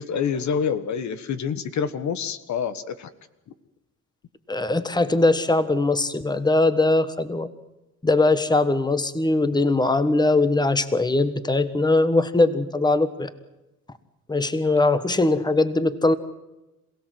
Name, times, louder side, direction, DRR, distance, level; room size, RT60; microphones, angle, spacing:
voice 1, 0.0-3.1, left 7 dB, 70° left, 12 dB, 1.5 m, -27 dB
voice 2, 4.5-7.5 8.0-13.3 14.3-16.1, left 2 dB, 15° left, 12 dB, 1.5 m, -21 dB
27.0 x 17.0 x 7.8 m, 0.99 s
cardioid pair, 90°, 30 cm